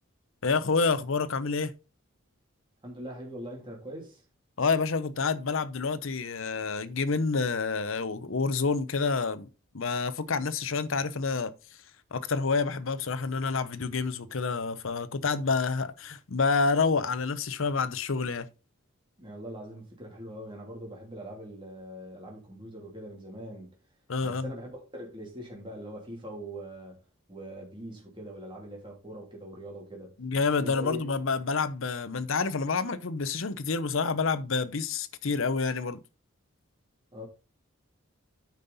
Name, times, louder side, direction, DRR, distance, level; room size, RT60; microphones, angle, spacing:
voice 1, 0.4-1.7 4.6-9.5 9.7-11.5 12.1-18.5 24.1-24.5 30.2-36.0, left 4 dB, 65° left, 0.7 m, -28 dB
voice 2, 2.8-4.2 19.2-23.7 24.2-27.0 27.3-30.1 30.6-31.1 37.1-37.3, equal, 25° right, 3.0 m, -42 dB
9.1 x 5.5 x 4.1 m
head